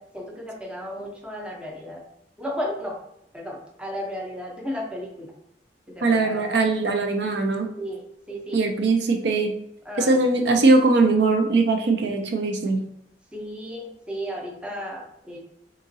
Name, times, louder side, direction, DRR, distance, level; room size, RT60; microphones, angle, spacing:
voice 1, 0.0-2.0 2.4-3.0 3.3-5.3 5.9-6.5 7.8-8.6 9.8-10.5 13.3-15.4, equal, 5° right, -1 dB, 0.6 m, -34 dB
voice 2, 6.0-7.7 8.5-9.5 10.0-12.8, right 3 dB, 65° right, 4 dB, 0.5 m, -20 dB
3.6 x 2.9 x 2.6 m, 0.78 s
head